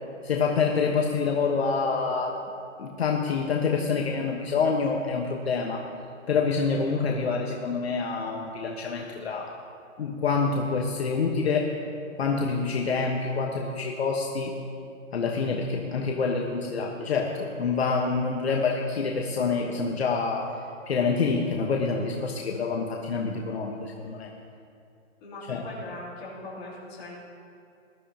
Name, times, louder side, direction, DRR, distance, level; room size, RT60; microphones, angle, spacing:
voice 1, 0.2-2.3 2.8-5.8 6.3-9.5 10.0-11.7 12.2-14.5 15.1-20.5 20.9-24.3 25.5-25.6, left 4 dB, 50° left, 0 dB, 1.3 m, -27 dB
voice 2, 25.2-27.2, left 2 dB, 15° left, -8 dB, 3.0 m, -40 dB
21.0 x 12.5 x 2.9 m, 2.5 s
hypercardioid pair, 165°, 39 cm